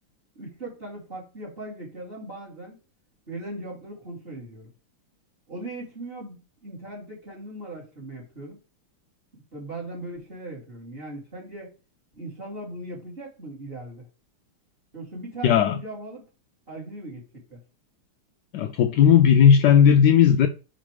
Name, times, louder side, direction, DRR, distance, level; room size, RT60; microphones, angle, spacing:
voice 1, 0.3-2.7 3.3-4.7 5.5-8.6 9.3-11.7 12.1-14.1 14.9-16.2 16.7-17.6, right 1 dB, 25° right, 2.8 m, -39 dB
voice 2, 15.4-15.8 18.5-20.5, left 8 dB, 85° left, 0.9 m, -16 dB
5.0 x 4.2 x 4.7 m
omnidirectional pair, 2.4 m